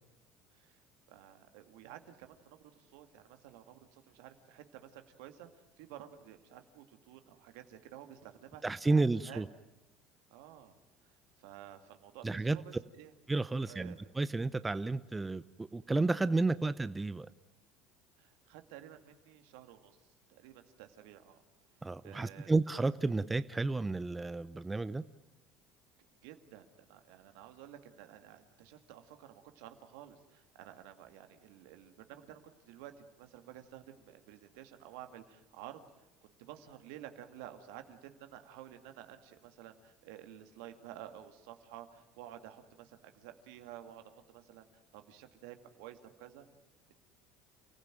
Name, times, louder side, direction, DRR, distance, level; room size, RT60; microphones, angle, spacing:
voice 1, 0.5-0.8 1.1-9.5 10.3-10.7 11.0-13.1 13.6-14.0 18.2-21.4 22.0-22.6 26.2-32.4 32.7-44.6 44.9-46.5, right 11 dB, 80° right, 7 dB, 2.2 m, -52 dB
voice 2, 8.6-9.5 12.2-12.6 13.3-17.3 21.8-25.0, right 3 dB, 15° right, 14 dB, 0.7 m, -31 dB
29.0 x 15.5 x 9.1 m, 1.0 s
supercardioid pair, 95°, 0 cm